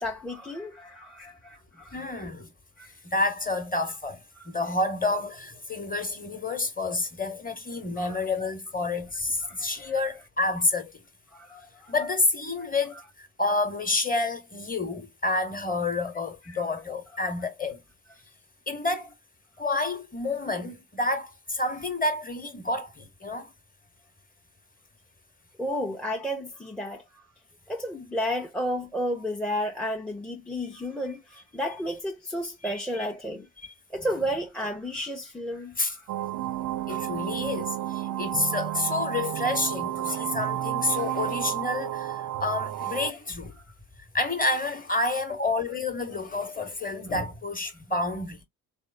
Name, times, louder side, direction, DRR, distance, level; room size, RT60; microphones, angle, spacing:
voice 1, 0.0-2.0 2.8-2.9 4.4-4.5 8.0-8.2 9.4-9.9 11.3-11.9 12.6-12.7 16.5-16.6 25.6-27.0 27.7-33.5 33.9-36.1 38.5-38.8 40.1-40.3, equal, ahead, 0.5 m, -32 dB
voice 2, 1.9-2.5 3.0-11.0 11.9-17.8 18.7-19.1 19.6-23.5 32.6-32.7 35.8-36.0 36.9-43.5 44.1-48.4, left 2 dB, 20° left, 1.0 m, -29 dB
sound 1, 36.1-43.1, right 13 dB, 50° right, 0.5 m, -31 dB
3.4 x 2.0 x 2.4 m
hypercardioid pair, 45°, 44 cm